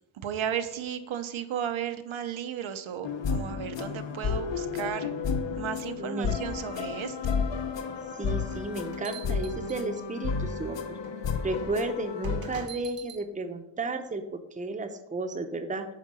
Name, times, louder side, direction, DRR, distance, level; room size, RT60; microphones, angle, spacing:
voice 1, 0.2-5.1 5.6-7.3, right 9 dB, 85° right, 9 dB, 0.8 m, -34 dB
sound 1, 3.0-12.7, left 5 dB, 70° left, 0.7 m, -32 dB
voice 2, 6.0-6.4 8.2-10.8 11.4-15.9, right 3 dB, 15° right, 7 dB, 0.6 m, -33 dB
sound 2, 8.5-10.3 11.0-11.2 12.2-13.2, right 8 dB, 50° right, 0.8 m, -46 dB
9.6 x 3.8 x 6.1 m, 0.93 s
wide cardioid pair, 180°, 46 cm